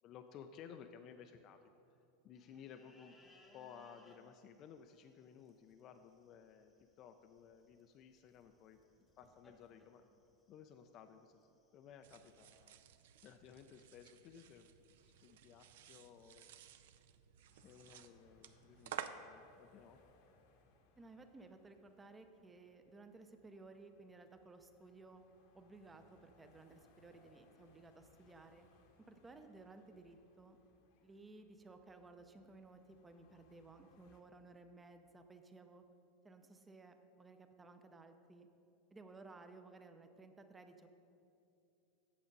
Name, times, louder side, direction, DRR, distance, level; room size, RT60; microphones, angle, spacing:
voice 1, 0.0-1.7 2.2-10.1 10.5-12.8 13.2-14.7 15.0-16.4 17.6-20.0, left 7 dB, 40° left, 7 dB, 0.3 m, -57 dB
sound 1, 2.4-12.7, left 2 dB, 15° left, 0.9 m, -70 dB
sound 2, 12.0-19.1, right 11 dB, 80° right, 0.4 m, -53 dB
sound 3, 17.5-34.2, left 4 dB, 60° left, 1.0 m, -72 dB
voice 2, 21.0-25.2 25.5-28.7 29.1-30.6 31.0-35.8 36.2-38.5 38.9-40.9, right 3 dB, 15° right, 7 dB, 0.5 m, -58 dB
8.6 x 6.4 x 5.2 m, 2.7 s
supercardioid pair, 145°, 0 cm